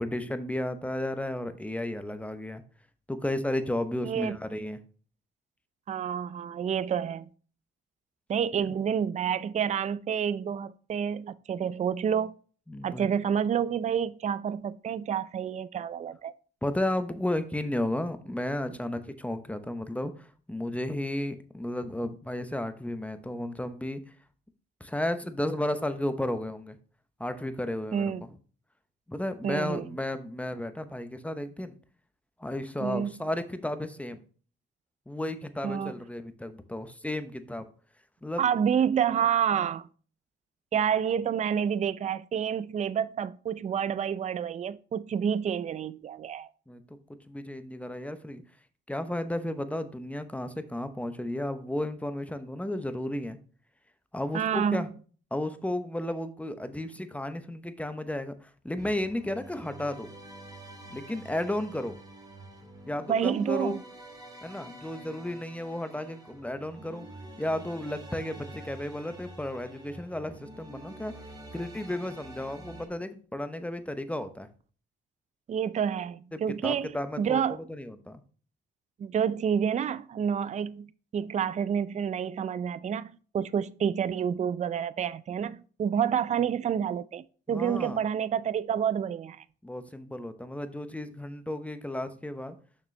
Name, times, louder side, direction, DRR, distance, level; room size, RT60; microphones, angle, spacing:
voice 1, 0.0-2.6 3.1-4.8 12.7-13.1 16.6-24.0 24.8-26.8 27.2-28.1 29.1-31.8 32.4-34.2 35.1-37.7 38.2-38.4 46.7-47.0 47.3-48.4 48.9-53.4 54.1-54.9 55.3-60.1 60.9-62.0 62.9-63.8 64.4-67.1 67.4-71.1 71.5-74.5 76.3-78.2 87.5-88.0 89.6-92.6, left 1 dB, 5° left, 0.8 m, -33 dB
voice 2, 4.0-4.4 5.9-7.2 8.3-12.3 12.8-16.3 27.9-28.2 29.4-29.9 32.8-33.1 35.6-35.9 38.4-39.9 40.7-46.5 54.3-54.9 63.1-63.8 75.5-77.6 79.0-89.4, right 8 dB, 35° right, 0.4 m, -29 dB
sound 1, 58.8-72.9, right 1 dB, 20° right, 2.2 m, -47 dB
6.7 x 6.0 x 3.3 m
cardioid pair, 90°, 20 cm